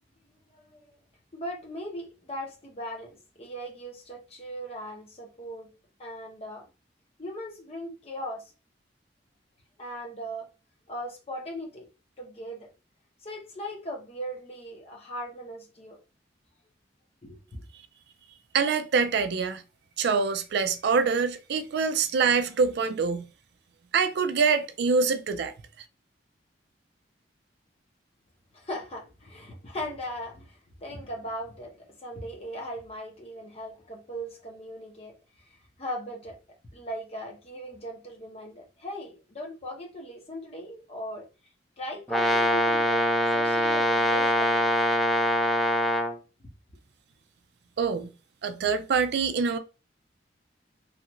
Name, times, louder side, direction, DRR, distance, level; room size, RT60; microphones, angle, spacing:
voice 1, 0.5-0.9 1.3-5.7 6.0-6.7 7.2-8.5 9.8-10.5 10.9-11.8 12.2-12.7 13.2-16.0 17.2-17.6 28.5-35.1 35.8-36.4 36.7-41.3 41.8-43.1 43.3-44.6, equal, 35° left, 0.8 m, -38 dB
voice 2, 18.5-19.6 20.0-23.2 23.9-25.5 47.8-48.1 48.4-49.6, right 5 dB, 65° right, 0.4 m, -25 dB
Brass instrument, 42.1-46.2, equal, ahead, 0.6 m, -23 dB
3.2 x 2.4 x 2.9 m
head